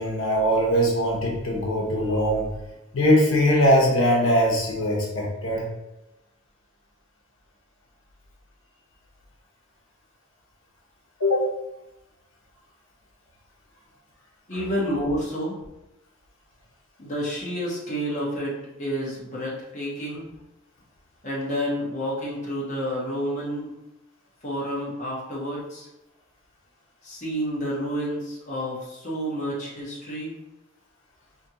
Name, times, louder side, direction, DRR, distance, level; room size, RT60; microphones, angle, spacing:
voice 1, 0.0-2.5 2.9-5.7 11.2-11.5, equal, 85° left, -3 dB, 1.0 m, -21 dB
voice 2, 14.5-15.6 17.0-20.3 21.2-23.7 24.4-25.9 27.0-30.3, equal, 35° left, -6 dB, 1.1 m, -29 dB
4.2 x 2.9 x 2.9 m, 0.96 s
head